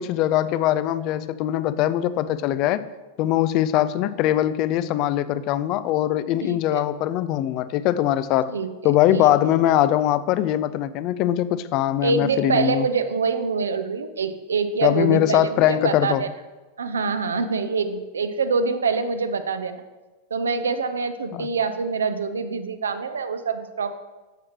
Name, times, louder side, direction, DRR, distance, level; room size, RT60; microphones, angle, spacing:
voice 1, 0.0-2.9 3.2-8.5 8.8-12.9 14.8-16.2 21.3-21.5, left 12 dB, 40° left, 16 dB, 0.4 m, -21 dB
voice 2, 6.4-6.8 8.5-9.3 12.0-16.3 16.8-19.8 20.3-23.9, right 4 dB, 70° right, 10 dB, 0.7 m, -25 dB
11.5 x 7.1 x 3.1 m, 1.2 s
figure-of-eight pair, 90°, 0 cm